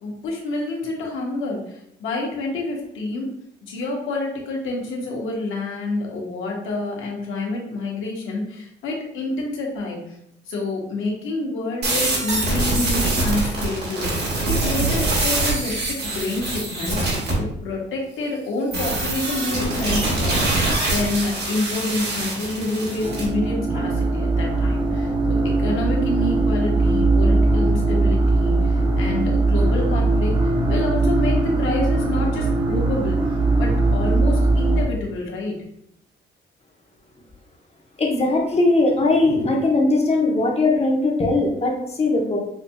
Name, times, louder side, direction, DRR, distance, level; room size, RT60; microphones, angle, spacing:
voice 1, 0.0-3.3 3.6-10.2 10.5-14.1 14.4-33.2 33.6-35.6, left 2 dB, 80° left, -1 dB, 1.2 m, -28 dB
sound 1, 11.8-17.3 18.7-23.3, right 2 dB, 55° right, 1.6 m, -24 dB
sound 2, 22.9-34.8, right 2 dB, 20° right, 0.9 m, -20 dB
voice 2, 38.0-42.4, left 2 dB, 30° left, 0 dB, 1.0 m, -19 dB
5.7 x 2.9 x 2.3 m, 0.74 s
cardioid pair, 90°, 20 cm